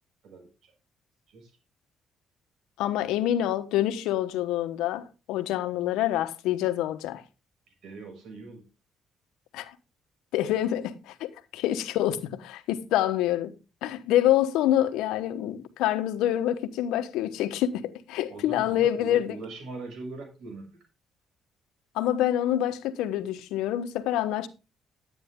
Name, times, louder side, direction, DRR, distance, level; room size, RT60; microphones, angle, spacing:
voice 1, 0.2-0.7 1.3-1.5 7.7-8.6 18.3-20.8, right 3 dB, 70° right, 6.3 m, -41 dB
voice 2, 2.8-7.2 9.5-9.7 10.3-13.6 13.8-19.4 21.9-24.5, left 12 dB, 90° left, 1.0 m, -26 dB
11.5 x 9.1 x 3.6 m
cardioid pair, 80°, 0 cm